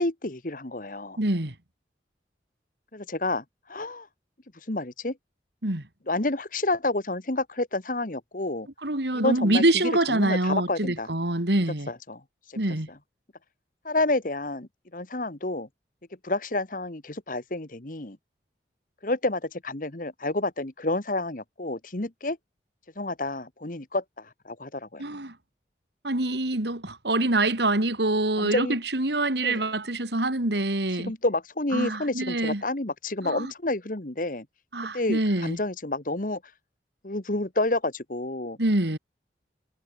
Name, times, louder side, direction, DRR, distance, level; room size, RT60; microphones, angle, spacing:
voice 1, 0.0-1.2 2.9-4.1 4.5-5.1 6.1-8.7 9.1-9.6 10.1-11.1 11.9-12.6 13.8-15.7 16.2-18.2 19.0-22.4 23.0-25.0 28.4-28.8 29.4-29.6 31.0-34.4 34.9-36.5 37.0-38.6, left 2 dB, 50° left, 1.6 m, -29 dB
voice 2, 1.2-1.5 5.6-5.8 8.8-11.9 12.6-12.9 25.0-25.3 26.0-31.1 31.7-32.6 33.2-33.5 34.7-35.6 38.6-39.0, right 2 dB, 75° right, 3.0 m, -25 dB
head